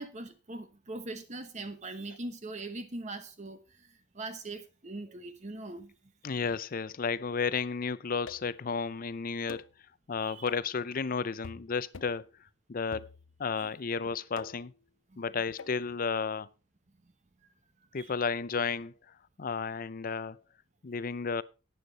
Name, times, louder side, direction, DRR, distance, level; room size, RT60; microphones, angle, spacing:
voice 1, 0.0-5.9 10.2-10.5 13.5-13.7 15.1-15.2 17.9-18.1, right 2 dB, 40° right, 1.1 m, -41 dB
voice 2, 6.2-9.6 10.1-12.2 12.7-13.1 13.4-14.7 15.2-16.5 17.9-18.9 19.4-20.4 20.8-21.4, left 5 dB, 45° left, 0.5 m, -32 dB
sound 1, 8.3-8.6 9.5-9.8 10.5-10.8 11.4-11.7 11.9-12.2 12.9-13.5 14.4-14.8 15.6-15.8, left 5 dB, 85° left, 0.7 m, -46 dB
12.0 x 9.4 x 4.0 m
head